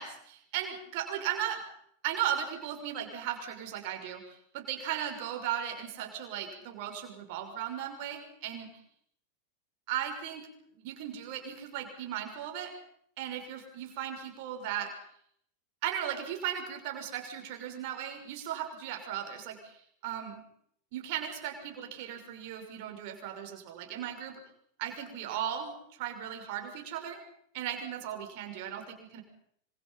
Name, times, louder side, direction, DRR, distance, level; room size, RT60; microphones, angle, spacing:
voice 1, 0.0-1.6 2.0-8.7 9.9-10.4 10.7-12.7 13.2-14.9 15.8-20.4 20.9-24.4 24.8-27.2 27.5-29.2, right 10 dB, 45° right, 4 dB, 5.9 m, -36 dB
26.5 x 26.5 x 5.7 m, 0.70 s
figure-of-eight pair, 90°, 0 cm